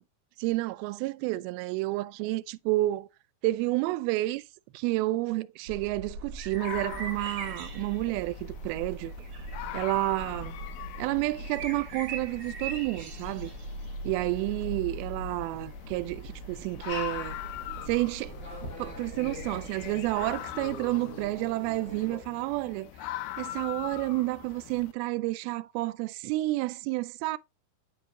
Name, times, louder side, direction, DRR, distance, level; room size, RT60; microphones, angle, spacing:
voice 1, 0.4-3.1 3.4-4.4 4.7-9.1 9.7-10.5 11.0-13.5 14.0-17.4 17.9-18.4 18.8-22.9 23.4-27.4, right 19 dB, 90° right, 2.4 m, -30 dB
sound 1, 5.7-20.4, right 2 dB, 45° right, 2.6 m, -41 dB
sound 2, 6.6-24.9, left 14 dB, 85° left, 2.6 m, -43 dB
sound 3, 16.9-22.2, left 2 dB, 30° left, 3.1 m, -44 dB
10.0 x 4.9 x 3.0 m
omnidirectional pair, 4.3 m